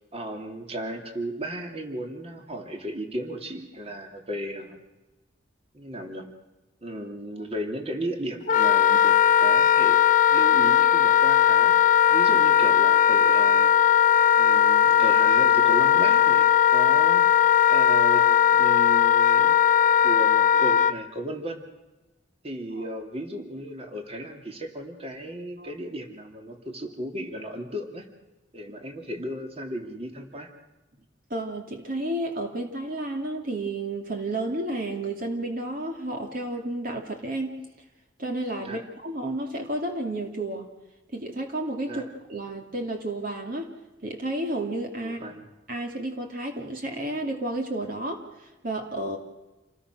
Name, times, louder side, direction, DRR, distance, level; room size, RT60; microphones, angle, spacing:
voice 1, 0.1-4.8 5.7-6.3 6.8-10.0 10.3-11.7 12.1-13.7 14.4-17.3 17.7-19.6 20.0-21.7 22.4-28.1 28.5-30.5 38.6-38.8 41.9-42.1 45.0-45.5, right 1 dB, 35° right, 4 dB, 2.8 m, -35 dB
Wind instrument woodwind instrument, 8.5-20.9, left 9 dB, 45° left, 0.7 m, -18 dB
voice 2, 31.3-37.6 38.2-40.7 41.1-43.7 44.0-45.2 45.7-49.2, right 1 dB, 50° right, 3 dB, 2.6 m, -31 dB
28.0 x 19.5 x 6.3 m, 1.1 s
head